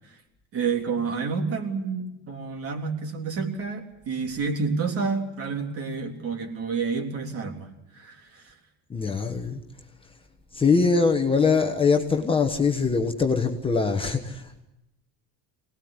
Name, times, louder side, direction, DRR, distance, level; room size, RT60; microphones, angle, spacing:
voice 1, 0.5-8.5, right 5 dB, 40° right, 3.5 m, -29 dB
voice 2, 8.9-9.6 10.5-14.6, left 5 dB, 15° left, 1.4 m, -23 dB
24.0 x 19.5 x 9.7 m
cardioid pair, 160°, 36 cm